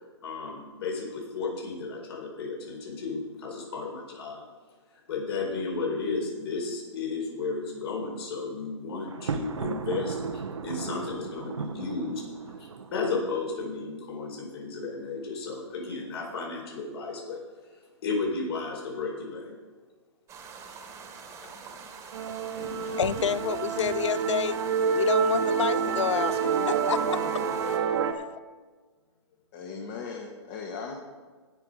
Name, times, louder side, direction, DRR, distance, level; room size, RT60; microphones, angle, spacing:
voice 1, 0.0-4.4 5.1-17.4 18.0-19.5, left 4 dB, 60° left, 0 dB, 4.5 m, -33 dB
Thunder, 9.1-13.2, right 5 dB, 90° right, 0.9 m, -36 dB
sound 1, 20.3-27.8, right 5 dB, 20° right, 1.5 m, -45 dB
Musical instrument, 22.1-28.1, right 6 dB, 65° right, 1.2 m, -27 dB
voice 2, 22.6-24.6 24.9-26.4 26.7-27.5 28.1-28.3, left 8 dB, 85° left, 20 dB, 0.4 m, -29 dB
voice 3, 29.5-30.9, left 5 dB, 40° left, 1 dB, 1.7 m, -38 dB
18.0 x 6.2 x 5.1 m, 1.4 s
hypercardioid pair, 135°, 15 cm